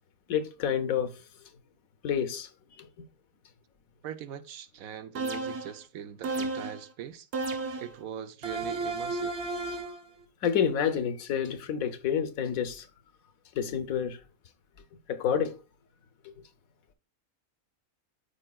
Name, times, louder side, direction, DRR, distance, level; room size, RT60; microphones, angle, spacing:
voice 1, 0.3-1.2 2.0-2.9 10.4-12.9 13.5-14.2 15.1-15.6, left 8 dB, 70° left, 1.2 m, -29 dB
voice 2, 4.0-7.3 7.8-9.4, right 9 dB, 75° right, 1.1 m, -41 dB
sound 1, 5.2-5.8 6.2-6.9 7.3-8.0 8.4-10.0, right 3 dB, 50° right, 1.3 m, -33 dB
13.0 x 4.4 x 2.3 m
omnidirectional pair, 1.5 m